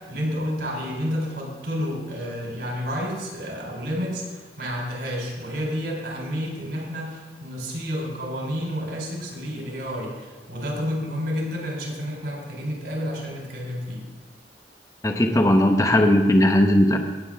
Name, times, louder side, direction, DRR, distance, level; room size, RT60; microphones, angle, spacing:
voice 1, 0.0-14.1, equal, 65° right, -2 dB, 3.8 m, -30 dB
voice 2, 15.0-17.0, left 1 dB, 20° left, 4 dB, 0.9 m, -18 dB
18.0 x 7.7 x 3.6 m, 1.3 s
head